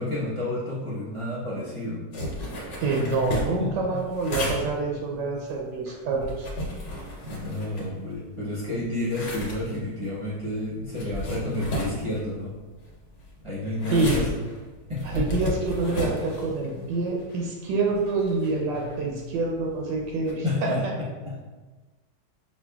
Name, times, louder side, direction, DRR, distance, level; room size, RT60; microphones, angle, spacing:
voice 1, 0.0-2.0 3.6-4.0 7.2-12.5 13.4-14.3 14.9-15.3 20.4-20.8 21.2-21.5, left 1 dB, 35° right, -9 dB, 0.5 m, -30 dB
sound 1, 2.1-8.3 8.7-20.3, left 1 dB, 85° left, 1.5 m, -35 dB
voice 2, 2.8-6.5 13.9-14.2 15.0-20.7, right 3 dB, 90° right, 0 dB, 1.3 m, -27 dB
5.7 x 2.3 x 2.3 m, 1.2 s
omnidirectional pair, 1.9 m